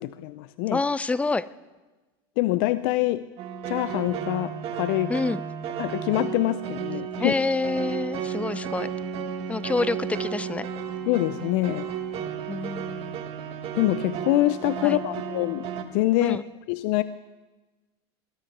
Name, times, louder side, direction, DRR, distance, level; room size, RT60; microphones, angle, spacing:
voice 1, 0.0-0.8 2.4-3.3 3.7-5.1 5.8-7.3 11.1-11.9 13.7-15.7 15.9-16.4 16.7-17.0, left 17 dB, 65° left, 15 dB, 0.5 m, -25 dB
voice 2, 0.7-1.4 5.1-5.4 7.2-8.9 9.5-10.7 12.5-13.2 14.8-15.0 16.2-16.4, left 3 dB, 10° left, 18 dB, 0.5 m, -27 dB
sound 1, 3.4-15.8, right 7 dB, 50° right, 1.7 m, -33 dB
21.0 x 9.9 x 6.0 m, 1.2 s
supercardioid pair, 115°, 13 cm